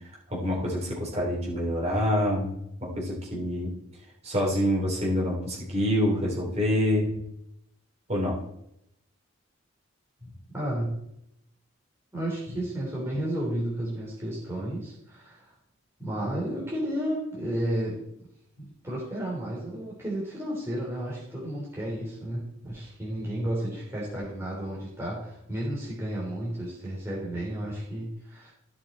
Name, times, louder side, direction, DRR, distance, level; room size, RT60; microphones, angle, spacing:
voice 1, 0.3-2.5 2.8-3.7 4.2-7.1 8.1-8.4 10.2-10.3, equal, 30° right, -4 dB, 3.6 m, -26 dB
voice 2, 10.5-11.0 12.1-15.5 16.0-18.0 18.6-28.5, right 1 dB, 10° right, -6 dB, 3.1 m, -32 dB
14.5 x 6.2 x 4.2 m, 0.79 s
head